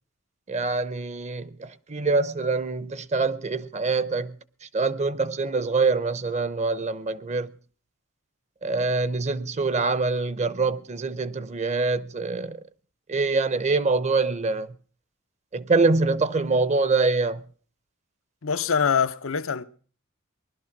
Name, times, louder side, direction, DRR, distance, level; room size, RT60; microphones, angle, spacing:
voice 1, 0.5-4.4 4.6-7.5 8.6-12.6 13.1-14.7 15.5-17.4, right 3 dB, 35° right, 0.7 m, -25 dB
voice 2, 18.4-19.6, left 6 dB, 90° left, 0.8 m, -24 dB
20.0 x 12.0 x 5.9 m
head